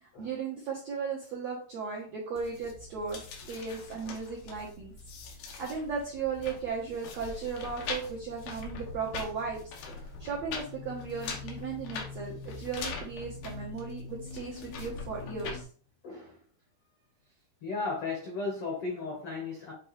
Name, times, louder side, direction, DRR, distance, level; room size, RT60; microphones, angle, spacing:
voice 1, 0.0-3.2 3.5-4.9 5.6-9.6 10.2-15.6, right 5 dB, 80° right, -3 dB, 1.5 m, -36 dB
sound 1, 2.4-15.6, left 4 dB, 70° left, 2.7 m, -42 dB
voice 2, 16.0-16.4 17.6-19.7, left 3 dB, 85° left, 0 dB, 1.2 m, -35 dB
7.8 x 4.0 x 3.2 m, 0.44 s
omnidirectional pair, 4.6 m